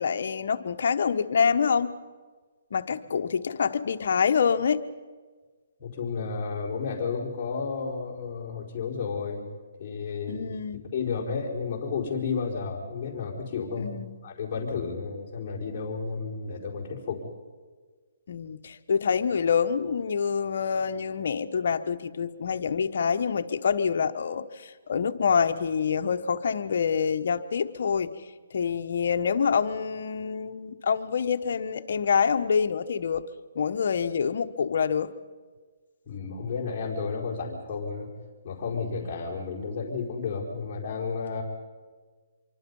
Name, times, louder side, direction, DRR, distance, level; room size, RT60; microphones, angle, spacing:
voice 1, 0.0-1.9 2.7-4.8 10.3-10.8 13.8-14.2 18.3-28.1 28.5-33.2 33.5-35.1, left 6 dB, 60° left, 8 dB, 1.2 m, -26 dB
voice 2, 5.8-9.5 9.8-10.5 10.9-13.9 14.2-17.2 36.1-38.1 38.4-41.4, left 5 dB, 25° left, -6 dB, 4.7 m, -32 dB
26.0 x 24.0 x 5.5 m, 1.4 s
hypercardioid pair, 160°, 0 cm